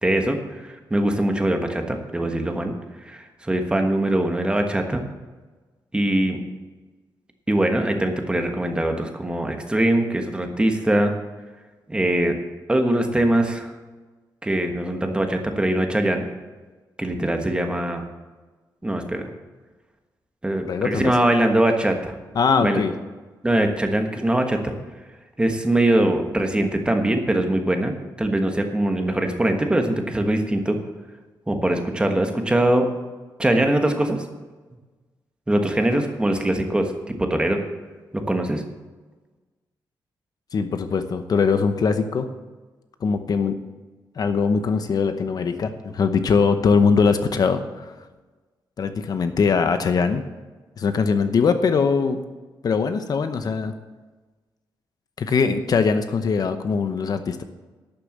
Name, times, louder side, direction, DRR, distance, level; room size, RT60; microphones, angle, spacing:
voice 1, 0.0-2.7 3.0-5.0 5.9-6.4 7.5-11.1 11.9-12.4 12.7-13.7 14.4-16.3 17.0-18.0 18.8-19.3 20.4-22.2 22.6-22.8 23.4-24.7 25.4-30.8 31.5-32.9 33.4-34.2 35.5-37.6 38.1-38.6, right 1 dB, 10° right, 4 dB, 1.3 m, -22 dB
voice 2, 20.7-21.1 22.4-22.9 40.5-42.3 43.0-43.6 44.2-47.9 48.8-50.2 50.8-52.2 52.6-53.7 55.2-57.4, left 5 dB, 55° left, 9 dB, 0.8 m, -21 dB
12.0 x 6.7 x 7.3 m, 1.3 s
wide cardioid pair, 130°, 8 cm